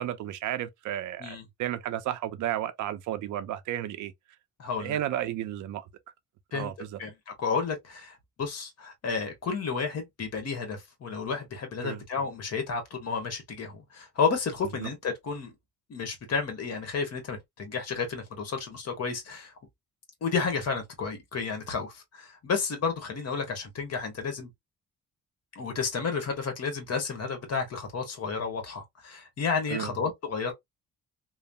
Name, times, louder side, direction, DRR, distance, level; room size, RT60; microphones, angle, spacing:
voice 1, 0.0-4.1 4.8-5.9 6.5-7.0 11.8-12.0 14.8-14.9 29.7-29.9, right 12 dB, 75° right, 0.5 m, -33 dB
voice 2, 4.6-5.0 6.5-6.7 7.0-15.5 15.9-19.5 20.2-24.5 25.5-30.5, left 5 dB, 55° left, 1.3 m, -31 dB
3.1 x 2.0 x 2.5 m
cardioid pair, 90°, 30 cm